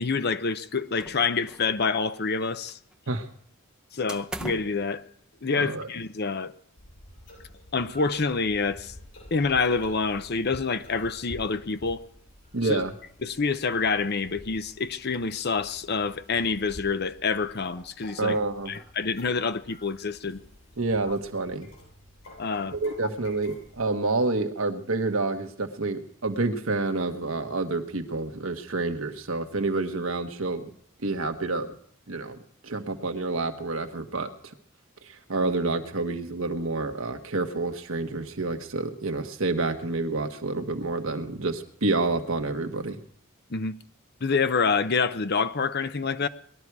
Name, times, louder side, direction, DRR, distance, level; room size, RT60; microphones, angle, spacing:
voice 1, 0.0-2.8 3.9-5.0 5.4-6.5 7.7-8.9 9.3-12.0 12.6-12.8 13.2-18.4 18.7-20.4 22.4-22.8 43.5-43.8 44.2-46.3, left 4 dB, 50° left, 0.7 m, -27 dB
sound 1, 1.0-1.7 2.0-2.9 4.1-4.8, right 1 dB, 5° right, 0.7 m, -40 dB
voice 2, 5.6-5.9 12.5-12.9 18.2-18.7 20.8-21.7 22.7-30.7 31.0-31.7 32.1-32.4 32.6-34.5 35.1-43.0, right 3 dB, 70° right, 1.4 m, -28 dB
sound 2, 6.8-24.0, left 1 dB, 75° left, 7.7 m, -50 dB
20.0 x 12.5 x 4.8 m
head